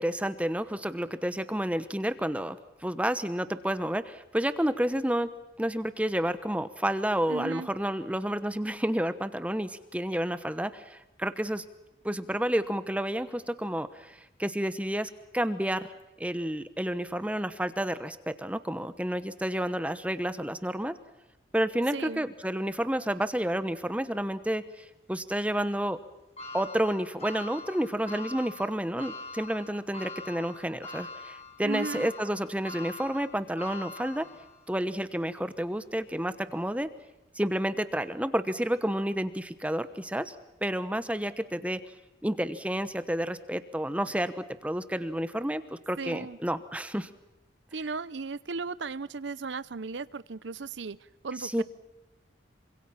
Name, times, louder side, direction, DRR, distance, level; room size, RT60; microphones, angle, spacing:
voice 1, 0.0-5.3 5.6-11.6 12.0-21.0 21.5-26.0 26.5-34.3 34.7-36.9 37.3-40.3 40.6-41.8 42.2-47.1 51.4-51.6, right 1 dB, 5° right, 12 dB, 1.0 m, -30 dB
voice 2, 7.3-7.7 21.9-22.2 31.6-32.1 46.0-46.4 47.7-51.0 51.2-51.6, right 4 dB, 80° right, 17 dB, 0.7 m, -36 dB
sound 1, 26.4-34.7 35.2-35.3 36.5-36.6, left 2 dB, 35° left, 7.3 m, -43 dB
27.0 x 25.5 x 5.8 m, 0.96 s
head